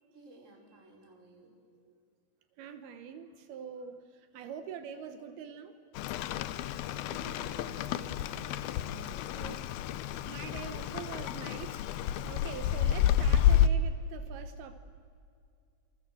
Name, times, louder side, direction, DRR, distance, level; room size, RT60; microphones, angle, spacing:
voice 1, 0.1-1.5 6.7-8.1 8.8-9.4 9.8-9.9, right 1 dB, 20° right, 1 dB, 4.8 m, -54 dB
voice 2, 2.6-4.0 4.3-5.7 6.0-6.1 9.3-9.6 9.9-14.8, right 7 dB, 80° right, 9 dB, 3.1 m, -44 dB
Rain, 6.0-13.7, left 10 dB, 80° left, 2.6 m, -30 dB
28.0 x 27.0 x 7.9 m, 2.4 s
omnidirectional pair, 4.4 m